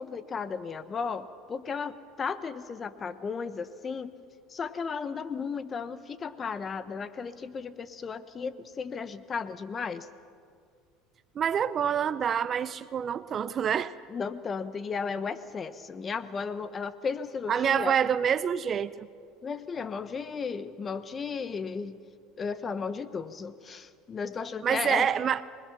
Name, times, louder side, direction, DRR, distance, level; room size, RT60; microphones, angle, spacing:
voice 1, 0.0-4.1 4.5-10.1 14.1-17.9 19.4-22.0 22.4-25.1, left 5 dB, 30° left, 13 dB, 1.0 m, -34 dB
voice 2, 11.4-13.9 17.5-19.1 24.6-25.4, right 8 dB, 40° right, 16 dB, 0.6 m, -27 dB
25.5 x 21.0 x 5.9 m, 2.2 s
supercardioid pair, 95°, 0 cm